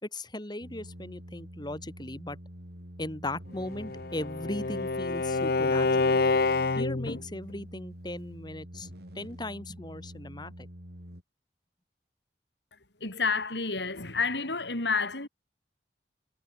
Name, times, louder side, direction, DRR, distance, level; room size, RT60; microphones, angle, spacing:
voice 1, 0.0-2.4 3.0-6.2 6.8-8.9 9.2-10.7, left 1 dB, 25° left, 3.9 m, -38 dB
sound 1, 0.6-11.2, equal, 65° right, 7.2 m, -46 dB
Bowed string instrument, 3.6-7.2, left 3 dB, 60° left, 0.9 m, -27 dB
voice 2, 12.7-15.3, left 4 dB, 75° left, 4.7 m, -30 dB
head